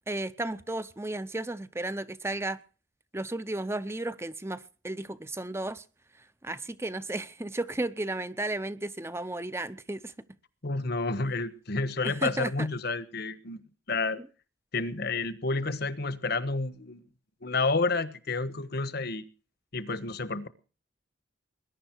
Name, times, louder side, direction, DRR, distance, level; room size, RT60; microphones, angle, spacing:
voice 1, 0.1-2.6 3.1-5.8 6.4-10.1 12.0-12.7, right 2 dB, 15° right, 0.7 m, -34 dB
voice 2, 10.6-13.6 13.9-14.2 14.7-17.0 17.4-19.2 19.7-20.5, left 3 dB, 55° left, 1.3 m, -30 dB
21.0 x 11.0 x 4.6 m
head